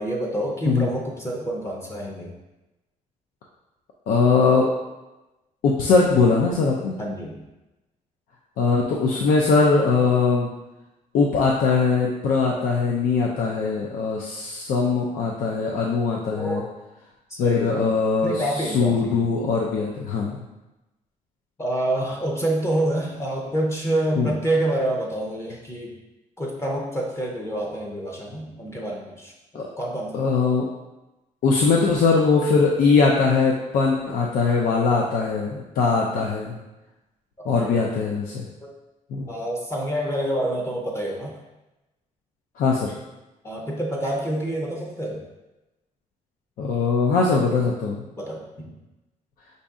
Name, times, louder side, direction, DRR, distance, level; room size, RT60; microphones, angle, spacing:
voice 1, 0.0-2.3 7.0-7.4 16.3-16.7 17.3-17.8 18.2-19.3 21.6-25.9 26.4-30.3 37.6-37.7 38.6-38.7 39.3-41.4 43.4-45.2 48.2-48.8, right 1 dB, 20° left, -1 dB, 0.6 m, -27 dB
voice 2, 4.1-4.7 5.6-6.9 8.6-10.5 11.1-16.6 17.4-20.4 24.2-24.3 29.5-29.7 30.1-30.7 31.4-36.6 37.4-38.5 39.1-39.3 42.6-42.9 46.6-48.1, left 4 dB, 85° left, -2 dB, 0.6 m, -21 dB
5.1 x 2.7 x 3.5 m, 1.0 s
cardioid pair, 160°, 14 cm